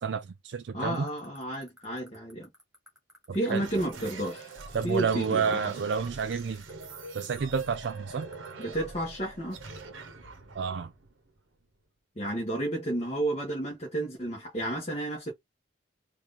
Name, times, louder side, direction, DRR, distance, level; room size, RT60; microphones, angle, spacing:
voice 1, 0.0-1.1 3.3-3.6 4.7-6.6 7.1-8.3 10.6-10.9, right 6 dB, 65° right, 0.4 m, -30 dB
voice 2, 0.7-2.5 3.3-4.5 4.8-5.7 8.6-9.6 12.1-15.3, right 1 dB, 35° left, 1.4 m, -31 dB
sound 1, 0.9-8.6, right 1 dB, 5° right, 1.7 m, -54 dB
sound 2, 3.6-11.8, right 3 dB, 90° right, 1.1 m, -45 dB
4.4 x 2.6 x 3.5 m
head